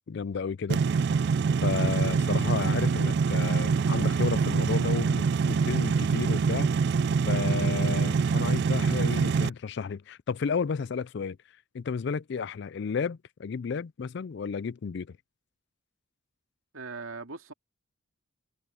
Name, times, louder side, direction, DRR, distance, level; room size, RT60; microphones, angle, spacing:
voice 1, 0.1-0.8 1.6-6.7 7.3-11.4 11.7-15.1, left 5 dB, 55° left, 0.4 m, -32 dB
sound 1, 0.7-9.5, right 5 dB, 50° right, 0.3 m, -25 dB
voice 2, 16.7-17.5, right 4 dB, 85° right, 2.4 m, -39 dB
head